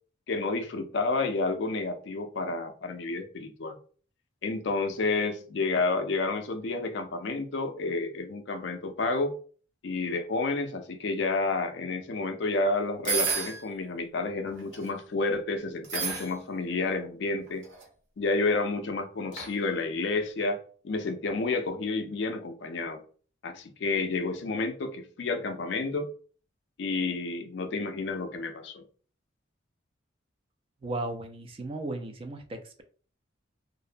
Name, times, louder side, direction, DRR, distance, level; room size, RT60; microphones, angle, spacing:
voice 1, 0.3-3.8 4.4-9.4 9.8-17.7 18.2-23.0 23.4-26.1 26.8-28.8, left 3 dB, 60° left, 0.4 m, -30 dB
sound 1, 13.0-13.6 14.5-14.9 15.8-16.3 17.5-17.8 19.3-19.5, right 6 dB, 75° right, 0.7 m, -30 dB
voice 2, 30.8-32.8, right 2 dB, 30° right, 0.3 m, -36 dB
2.6 x 2.1 x 2.5 m
head